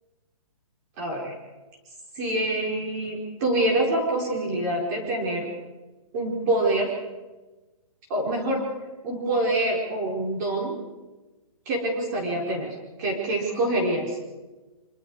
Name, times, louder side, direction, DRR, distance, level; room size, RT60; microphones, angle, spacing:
voice 1, 1.0-1.3 2.2-5.5 6.1-6.9 8.1-8.7 9.0-10.7 11.7-14.1, right 1 dB, 30° right, -1 dB, 4.6 m, -26 dB
25.5 x 24.5 x 4.8 m, 1.2 s
hypercardioid pair, 165°, 19 cm